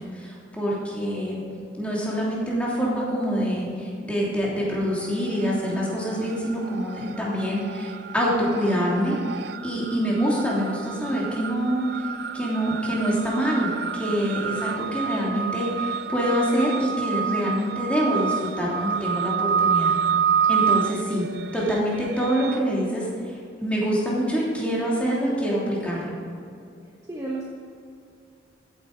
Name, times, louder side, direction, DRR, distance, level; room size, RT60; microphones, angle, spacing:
voice 1, 0.0-1.4 1.8-9.2 9.6-20.0 20.5-21.3 21.5-26.1, equal, 5° left, -5 dB, 3.0 m, -25 dB
sound 1, 5.0-5.7 6.0-22.6, right 7 dB, 55° right, 0.3 m, -28 dB
voice 2, 27.1-27.4, right 2 dB, 20° right, -3 dB, 1.1 m, -33 dB
14.5 x 9.1 x 5.0 m, 2.5 s
head